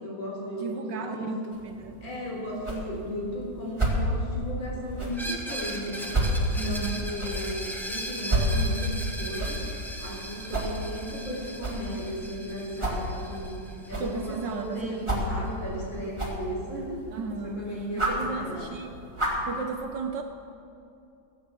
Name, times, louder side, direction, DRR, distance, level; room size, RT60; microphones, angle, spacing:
voice 1, 0.0-1.3 2.0-6.1 6.5-9.6 10.0-13.6 13.9-17.0 17.4-18.8, equal, 65° left, -3 dB, 4.3 m, -35 dB
voice 2, 0.6-2.0 6.5-7.1 13.9-15.3 17.1-17.7 18.0-19.0 19.5-20.2, right 5 dB, 70° right, 6 dB, 1.1 m, -35 dB
sound 1, 1.5-19.5, right 1 dB, 15° right, 1.9 m, -32 dB
Screech, 5.1-14.8, right 1 dB, ahead, 0.5 m, -38 dB
16.0 x 8.1 x 7.4 m, 2.6 s
omnidirectional pair, 2.3 m